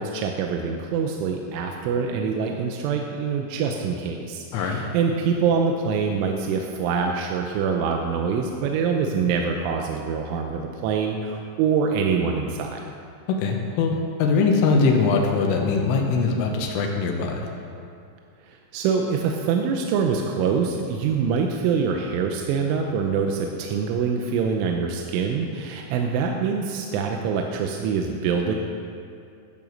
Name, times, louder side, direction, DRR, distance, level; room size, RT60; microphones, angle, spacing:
voice 1, 0.0-12.8 18.5-28.6, right 6 dB, 90° right, 2 dB, 3.2 m, -25 dB
voice 2, 13.4-17.4, left 4 dB, 80° left, 1 dB, 3.5 m, -22 dB
11.0 x 11.0 x 6.4 m, 2.4 s
omnidirectional pair, 5.6 m